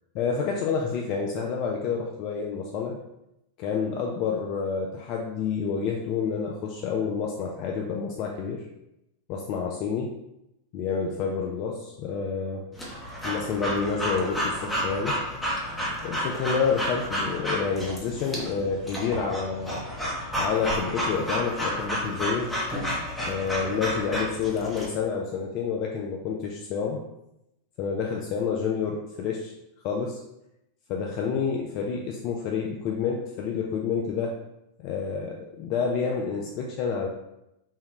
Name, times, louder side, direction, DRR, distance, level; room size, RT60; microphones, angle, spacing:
voice 1, 0.1-3.0 3.6-8.6 9.3-10.1 10.7-12.6 13.2-15.2 16.0-19.8 20.4-22.5 23.3-27.0 27.8-29.5 29.8-30.2 30.9-34.3 34.8-37.1, left 6 dB, 40° left, 0 dB, 0.3 m, -29 dB
Breathing / Dog, 12.8-24.9, equal, 5° left, 0.8 m, -31 dB
3.6 x 2.1 x 2.9 m, 0.86 s
figure-of-eight pair, 90°, 0 cm